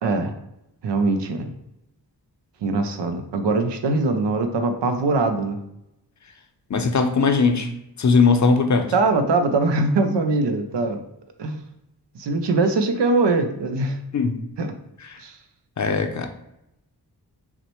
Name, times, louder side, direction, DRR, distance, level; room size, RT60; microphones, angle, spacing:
voice 1, 0.0-0.3 0.8-1.5 2.6-5.6 8.9-11.0 11.4-11.6 12.1-14.0 14.6-14.7 15.2-15.3, right 3 dB, 85° right, 6 dB, 0.6 m, -22 dB
voice 2, 6.7-7.7 8.0-8.9 14.1-14.4 15.8-16.3, left 4 dB, 45° left, 6 dB, 0.6 m, -19 dB
5.8 x 2.1 x 3.0 m, 0.84 s
cardioid pair, 60°, 41 cm